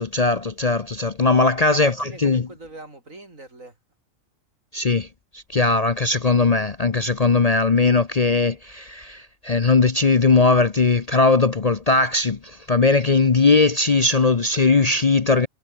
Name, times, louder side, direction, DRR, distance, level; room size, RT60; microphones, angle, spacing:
voice 1, 0.0-2.5 4.7-5.1 5.3-15.5, left 3 dB, 35° left, 0.8 m, -19 dB
voice 2, 1.6-3.7, right 2 dB, 75° right, 5.8 m, -42 dB
omnidirectional pair, 1.4 m